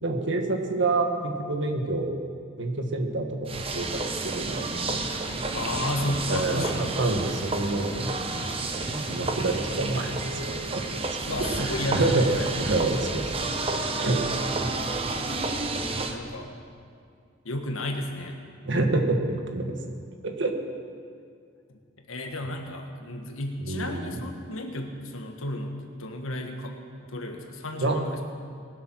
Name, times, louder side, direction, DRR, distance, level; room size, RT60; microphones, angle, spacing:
voice 1, 0.0-2.2 2.6-4.7 6.3-8.1 9.0-10.4 10.7-10.8 11.9-12.3 12.6-13.5 14.0-14.2 18.6-19.7 20.2-20.5 23.6-24.1 27.8-28.0, right 2 dB, 60° right, 3 dB, 1.6 m, -27 dB
sound 1, 3.5-16.1, right 3 dB, 30° right, 0.9 m, -30 dB
voice 2, 5.5-6.9 11.3-12.5 16.1-16.5 17.4-18.4 22.1-26.8 27.1-28.2, left 1 dB, 85° left, 3 dB, 1.7 m, -33 dB
20.5 x 7.9 x 6.2 m, 2.2 s
head